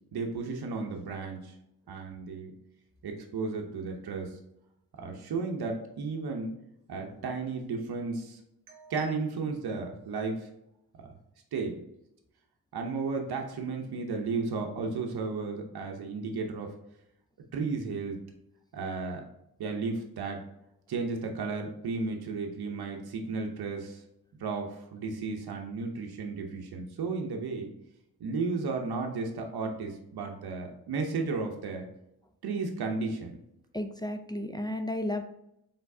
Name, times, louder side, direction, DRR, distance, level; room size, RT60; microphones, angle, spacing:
voice 1, 0.1-1.5 1.9-2.5 3.0-4.4 5.0-6.6 6.9-8.4 8.7-10.5 11.5-11.8 12.7-16.7 17.5-18.2 18.7-19.2 19.6-20.4 20.9-24.0 24.4-27.7 28.2-31.9 32.4-33.4, right 4 dB, 75° right, 3 dB, 0.8 m, -34 dB
voice 2, 33.7-35.2, left 1 dB, 10° left, 6 dB, 0.4 m, -33 dB
4.4 x 3.4 x 2.7 m, 0.81 s
cardioid pair, 55°, 38 cm